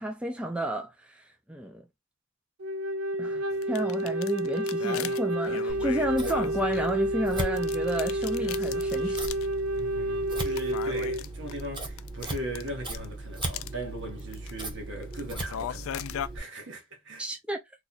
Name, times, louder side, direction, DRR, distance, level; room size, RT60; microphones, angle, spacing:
voice 1, 0.0-1.8 3.2-9.3 17.2-17.6, right 1 dB, 5° right, 0.4 m, -31 dB
Wind instrument woodwind instrument, 2.6-11.2, right 1 dB, 85° right, 0.6 m, -30 dB
sound 1, 3.5-7.2 7.6-9.5 9.8-9.9 10.4-13.0 13.4-13.7 14.2-14.7 15.0-16.3, left 10 dB, 75° left, 0.3 m, -39 dB
Scissors, 5.7-16.4, right 2 dB, 25° right, 0.9 m, -38 dB
voice 2, 9.8-17.2, equal, 65° right, 1.1 m, -39 dB
3.0 x 2.2 x 3.8 m
head